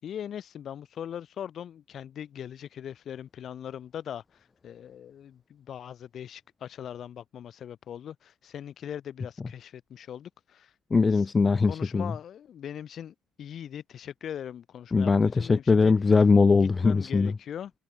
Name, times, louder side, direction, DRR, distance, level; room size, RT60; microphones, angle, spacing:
voice 1, 0.0-10.7 11.4-15.9 16.5-17.7, left 9 dB, 45° left, 3.8 m, -40 dB
voice 2, 10.9-12.1 14.9-17.3, left 4 dB, 20° left, 0.4 m, -21 dB
cardioid pair, 140°, 0 cm